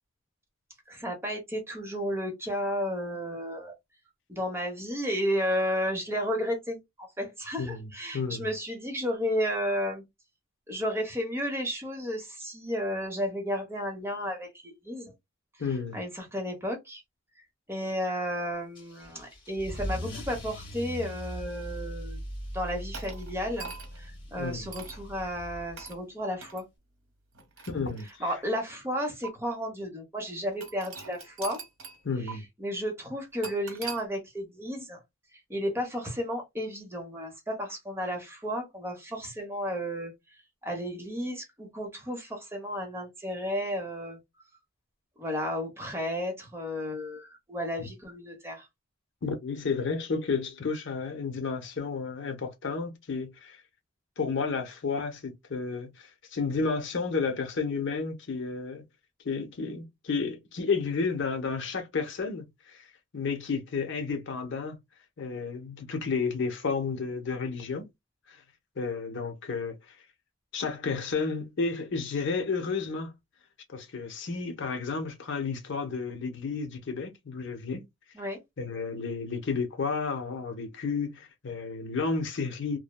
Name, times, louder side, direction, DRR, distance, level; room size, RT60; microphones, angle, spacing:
voice 1, 0.9-3.7 4.3-10.0 10.7-15.1 15.9-17.0 17.7-22.2 22.5-26.7 28.2-31.6 32.2-35.0 35.5-40.1 40.6-44.2 45.2-48.7 78.1-78.4, equal, 10° right, 0.9 m, -33 dB
voice 2, 7.6-8.5 15.6-16.0 24.4-24.7 27.7-28.2 32.0-32.4 47.8-47.9 49.2-53.6 54.2-58.8 59.2-62.9 63.1-64.8 65.2-67.9 68.3-68.4 68.8-70.0 70.5-73.1 73.7-77.9 78.6-82.8, left 4 dB, 60° left, 0.7 m, -32 dB
Car / Engine starting / Accelerating revving vroom, 18.7-25.9, equal, 25° left, 1.4 m, -39 dB
sound 1, 22.9-24.1 24.7-25.0 25.8-26.0 26.4-26.6 27.3-28.5 29.2-29.3 30.6-32.0 32.3-32.4 33.4-34.0, right 5 dB, 70° right, 0.9 m, -42 dB
3.1 x 2.1 x 2.2 m
head